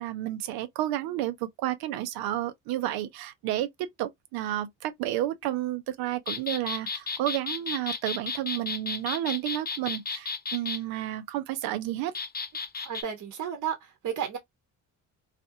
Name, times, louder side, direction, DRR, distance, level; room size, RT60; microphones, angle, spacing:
voice 1, 0.0-12.1, right 13 dB, 90° right, 0.6 m, -31 dB
sound 1, 6.3-10.8 12.1-13.0, left 4 dB, 25° left, 0.7 m, -33 dB
voice 2, 12.8-14.4, right 9 dB, 55° right, 0.9 m, -33 dB
2.5 x 2.4 x 2.6 m
supercardioid pair, 70°, 35 cm